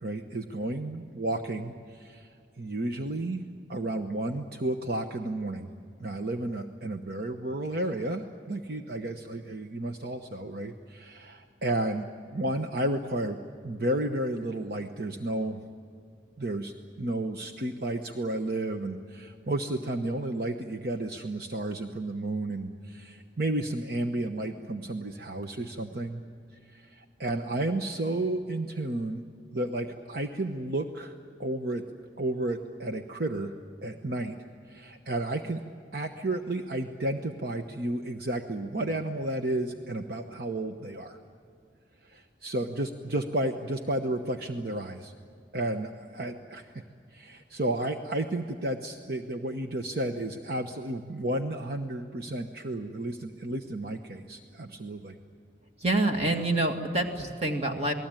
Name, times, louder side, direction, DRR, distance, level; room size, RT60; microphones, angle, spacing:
voice 1, 0.0-3.4 3.7-5.7 6.0-12.0 12.3-13.4 13.6-15.6 16.4-26.2 26.6-29.2 29.5-31.8 32.2-33.5 33.8-34.4 34.6-35.6 35.9-41.2 42.0-45.1 45.5-46.8 47.1-55.2, right 1 dB, 55° right, 5 dB, 1.0 m, -32 dB
voice 2, 55.8-57.9, right 2 dB, 35° right, 3 dB, 2.3 m, -27 dB
28.5 x 20.0 x 9.1 m, 2.3 s
head